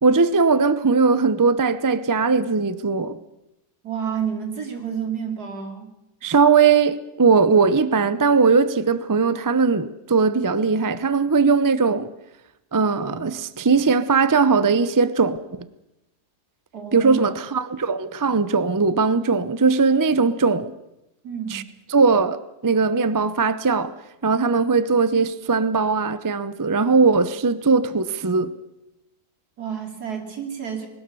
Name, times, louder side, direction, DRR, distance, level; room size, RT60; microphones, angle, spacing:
voice 1, 0.0-3.2 6.2-12.1 12.7-15.4 16.9-20.7 21.5-21.6 21.9-23.9 24.2-28.5, right 4 dB, 30° right, 0.3 m, -19 dB
voice 2, 3.8-5.9 16.7-17.4 21.2-21.6 29.6-30.9, right 7 dB, 70° right, 3.3 m, -30 dB
21.0 x 19.5 x 6.9 m
omnidirectional pair, 1.7 m